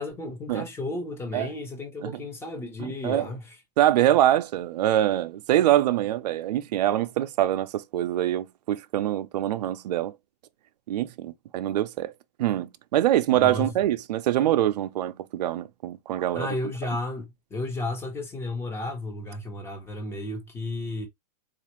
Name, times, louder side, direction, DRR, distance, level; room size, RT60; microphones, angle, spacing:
voice 1, 0.0-3.6 13.3-13.7 16.3-21.1, left 2 dB, 10° left, 1.0 m, -33 dB
voice 2, 2.8-3.3 3.8-10.1 10.9-12.1 12.4-16.5, right 13 dB, 75° right, 0.5 m, -24 dB
4.1 x 2.4 x 2.9 m
supercardioid pair, 155°, 21 cm